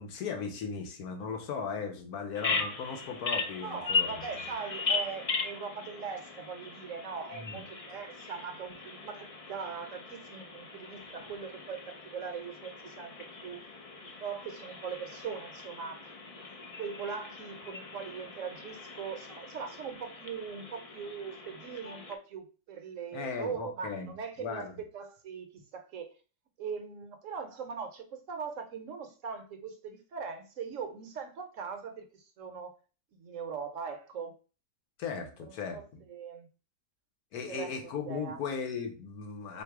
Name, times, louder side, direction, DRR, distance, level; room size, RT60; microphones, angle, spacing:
voice 1, 0.0-4.1 7.3-7.6 23.1-24.7 35.0-36.0 37.3-39.6, left 5 dB, 75° left, 1.4 m, -37 dB
Bird vocalization bird call bird song, 2.3-22.1, left 4 dB, 55° left, 0.4 m, -38 dB
voice 2, 3.6-13.7 14.2-16.1 16.8-26.1 26.6-32.8 33.1-34.3 35.4-35.8 36.1-36.5 37.5-38.4, right 6 dB, 65° right, 0.9 m, -41 dB
3.8 x 3.1 x 4.6 m
omnidirectional pair, 1.6 m